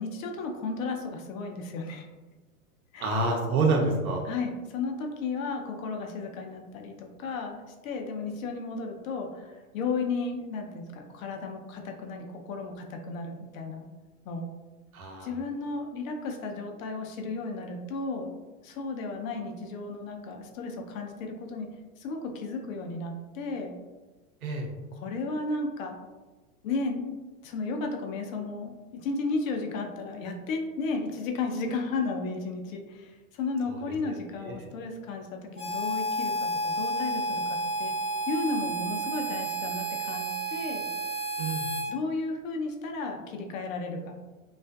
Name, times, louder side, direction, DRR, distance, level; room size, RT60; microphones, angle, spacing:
voice 1, 0.0-2.1 2.9-3.1 4.2-7.6 7.8-13.9 14.3-14.5 15.2-18.3 18.6-21.7 22.0-23.7 24.9-26.0 26.6-27.1 27.4-37.9 38.3-40.9 41.9-44.1, left 3 dB, 65° left, 3 dB, 0.6 m, -34 dB
voice 2, 3.0-4.2 14.9-15.3 24.4-24.7 34.4-34.7 41.4-41.7, right 3 dB, 75° right, 1 dB, 0.7 m, -27 dB
Harmonica, 35.6-41.9, right 2 dB, 15° left, 0.5 m, -31 dB
2.4 x 2.4 x 2.2 m, 1.2 s
hypercardioid pair, 105°, 43 cm